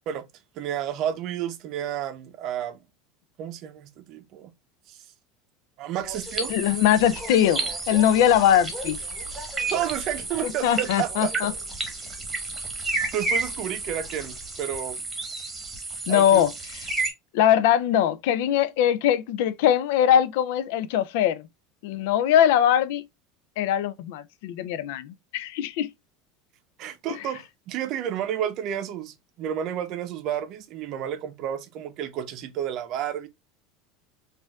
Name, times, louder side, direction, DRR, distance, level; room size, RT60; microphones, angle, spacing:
voice 1, 0.6-2.8 3.4-4.5 4.9-5.0 5.8-6.5 9.7-11.3 13.1-15.0 16.1-16.4 26.8-33.3, right 10 dB, 45° right, 0.6 m, -31 dB
Train, 6.0-14.6, equal, 10° left, 1.3 m, -43 dB
sound 1, 6.1-17.1, right 3 dB, 15° right, 1.1 m, -32 dB
voice 2, 6.5-9.0 10.4-11.5 16.1-16.8 17.3-21.4 21.8-23.0 23.6-25.9 27.1-27.3, left 10 dB, 70° left, 0.3 m, -21 dB
4.3 x 2.5 x 2.2 m
supercardioid pair, 150°, 0 cm